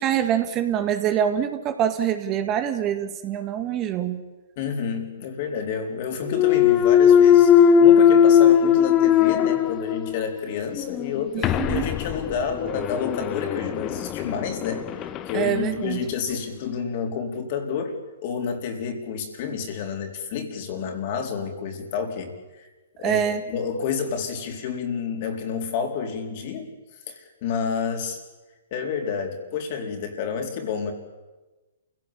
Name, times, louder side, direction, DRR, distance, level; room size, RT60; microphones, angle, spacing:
voice 1, 0.0-4.2 11.7-11.8 15.3-16.0 23.0-23.4, right 9 dB, 30° right, 7 dB, 2.0 m, -24 dB
voice 2, 4.6-18.0 18.2-22.3 23.0-26.7 27.1-28.2 28.7-30.9, left 6 dB, 45° left, 3 dB, 4.3 m, -29 dB
Thump thud, 6.3-10.3 10.8-15.4, left 8 dB, 25° left, 1.1 m, -18 dB
28.0 x 16.5 x 8.8 m, 1.2 s
hypercardioid pair, 130°, 0 cm